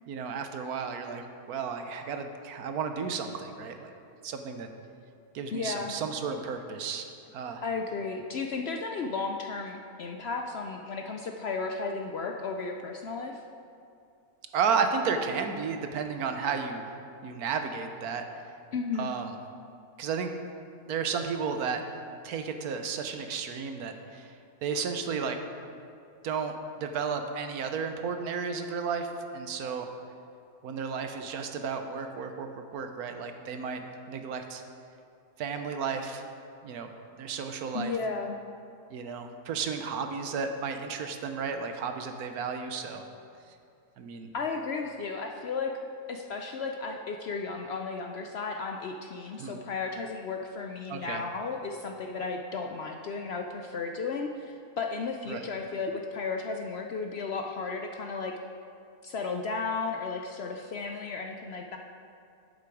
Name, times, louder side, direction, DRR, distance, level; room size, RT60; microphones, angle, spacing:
voice 1, 0.1-3.9 4.2-4.7 5.3-7.6 14.5-16.9 17.2-18.4 19.0-19.4 20.0-20.3 20.9-21.8 22.2-24.3 24.6-25.4 26.2-29.1 29.3-29.9 30.6-34.6 35.4-36.3 36.6-36.9 37.2-37.9 38.9-43.0 44.0-44.3 49.4-49.6 50.9-51.2 55.3-55.5, right 5 dB, 80° right, 6 dB, 1.3 m, -33 dB
voice 2, 5.5-5.9 7.6-13.4 18.7-19.1 37.7-38.4 44.3-45.7 46.1-58.3 59.0-61.8, left 4 dB, 65° left, 3 dB, 0.7 m, -34 dB
10.5 x 7.7 x 4.7 m, 2.6 s
omnidirectional pair, 1.6 m